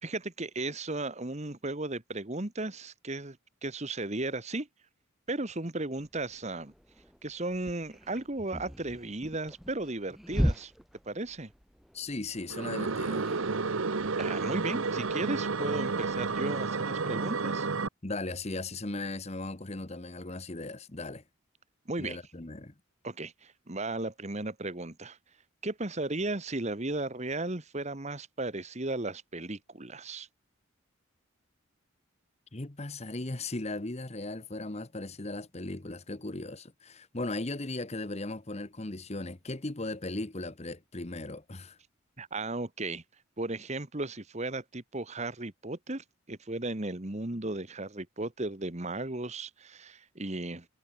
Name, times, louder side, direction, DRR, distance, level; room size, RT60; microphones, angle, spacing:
voice 1, 0.0-4.7 5.3-6.7 7.2-10.7 11.0-11.5 14.2-17.7 21.9-22.2 23.0-25.2 25.6-30.3 42.2-43.0 43.4-50.7, right 2 dB, 30° right, 1.5 m, -35 dB
sound 1, 6.0-16.5, equal, ahead, 5.3 m, -39 dB
voice 2, 11.9-13.3 18.0-21.2 22.0-22.7 32.5-41.8, left 2 dB, 30° left, 1.1 m, -37 dB
sound 2, 12.5-17.9, right 4 dB, 70° right, 1.0 m, -31 dB
head